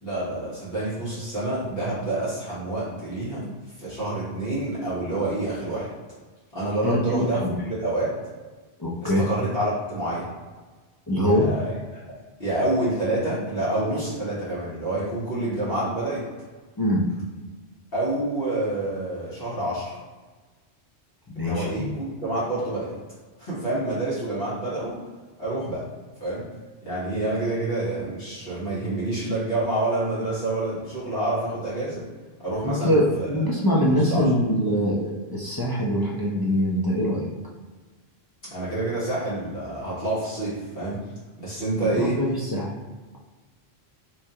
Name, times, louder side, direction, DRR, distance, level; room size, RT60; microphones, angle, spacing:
voice 1, 0.0-3.5 3.8-5.9 6.5-8.1 9.0-10.3 11.2-11.7 12.4-16.2 17.9-20.0 21.3-22.9 23.4-25.0 25.4-25.8 26.2-26.4 26.8-32.0 32.4-33.3 33.8-34.3 38.5-41.0 41.4-42.2, right 2 dB, 60° left, -10 dB, 1.4 m, -28 dB
voice 2, 6.8-7.5 8.8-9.2 11.1-11.5 16.8-17.1 21.3-21.9 32.6-37.3 41.8-42.7, equal, 35° left, -6 dB, 0.4 m, -23 dB
3.5 x 3.0 x 2.7 m, 1.3 s
omnidirectional pair, 1.1 m